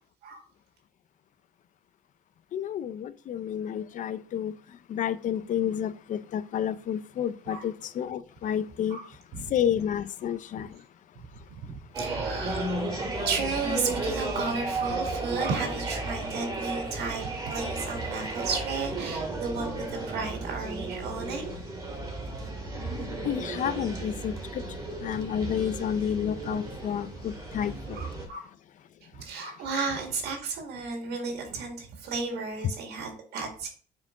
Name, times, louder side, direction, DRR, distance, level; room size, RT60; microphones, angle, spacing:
voice 1, 2.5-4.5 4.9-9.0 9.5-10.7 23.2-24.3 25.0-28.0, left 9 dB, 50° left, 0.5 m, -30 dB
voice 2, 11.6-12.9 13.2-21.5 27.9-28.4 29.1-33.7, right 4 dB, 75° right, 1.9 m, -33 dB
sound 1, 11.9-28.3, right 2 dB, 20° right, 2.3 m, -34 dB
5.9 x 4.5 x 3.6 m
cardioid pair, 110°, 17 cm